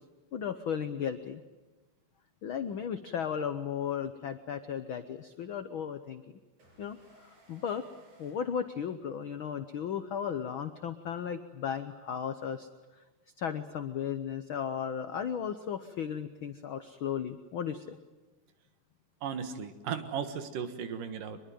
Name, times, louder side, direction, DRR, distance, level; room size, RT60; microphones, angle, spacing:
voice 1, 0.3-1.4 2.4-6.2 6.8-7.8 8.2-12.7 13.4-18.0, left 8 dB, 90° left, 10 dB, 1.1 m, -35 dB
sound 1, 6.6-9.4, right 2 dB, 65° right, 8.1 m, -61 dB
voice 2, 19.2-21.4, right 7 dB, 85° right, 9 dB, 3.3 m, -36 dB
24.5 x 22.0 x 9.3 m, 1.2 s
omnidirectional pair, 3.7 m